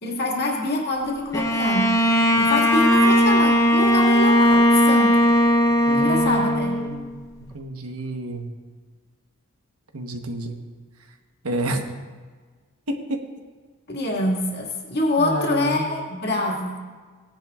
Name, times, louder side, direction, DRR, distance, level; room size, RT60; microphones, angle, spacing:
voice 1, 0.0-1.9 2.4-5.2 5.9-6.8 13.9-16.8, left 2 dB, 50° left, -2 dB, 2.1 m, -25 dB
Bowed string instrument, 1.3-7.1, equal, 15° left, 0.8 m, -18 dB
voice 2, 5.9-7.2 7.5-8.4 9.9-10.6 11.4-11.8 12.9-13.2 15.2-15.9, right 1 dB, 90° right, 4 dB, 1.2 m, -29 dB
17.5 x 10.5 x 2.5 m, 1.5 s
head